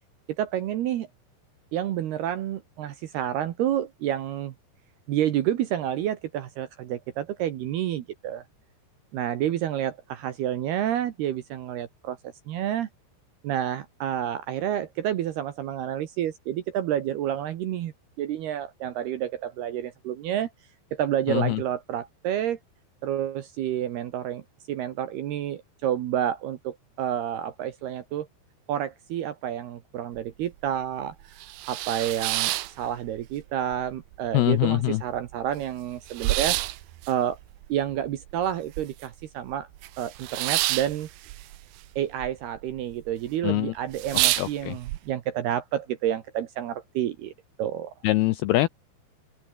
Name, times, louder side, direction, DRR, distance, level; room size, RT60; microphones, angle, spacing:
voice 1, 0.4-1.1 1.7-4.5 5.1-8.4 9.1-12.2 12.5-12.9 13.4-20.5 20.9-22.6 23.0-24.4 24.7-28.3 28.7-31.3 31.7-36.6 37.1-37.4 37.7-39.7 40.0-41.1 42.0-47.3 47.6-47.9, right 11 dB, 65° right, 3.0 m, -29 dB
voice 2, 21.3-21.6 34.3-35.0 43.4-43.7 44.4-44.8 48.0-48.7, left 17 dB, 85° left, 2.2 m, -23 dB
sound 1, 30.2-30.3 30.7-30.8 31.2-33.4 33.7-34.5 34.8-34.9 35.1-39.2 39.5-42.3 42.6-43.1 43.5-43.6 43.9-45.0, right 17 dB, 80° right, 2.1 m, -29 dB
open air
omnidirectional pair, 5.5 m